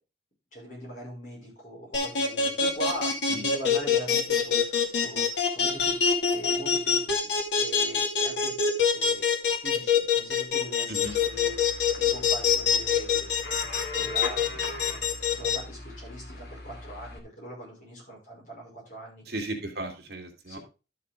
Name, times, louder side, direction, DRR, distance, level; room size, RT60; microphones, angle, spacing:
voice 1, 0.5-6.0 6.3-8.6 8.9-9.3 9.6-11.6 12.0-13.3 13.9-15.0 15.3-19.2 20.5-20.6, right 1 dB, 45° left, -3 dB, 5.7 m, -41 dB
sound 1, 1.9-15.6, left 6 dB, 85° left, 2.6 m, -24 dB
sound 2, 11.0-17.2, left 2 dB, 60° left, 2.3 m, -40 dB
voice 2, 19.3-20.6, right 1 dB, 65° right, 2 dB, 2.4 m, -36 dB
12.0 x 6.5 x 3.7 m, 0.31 s
head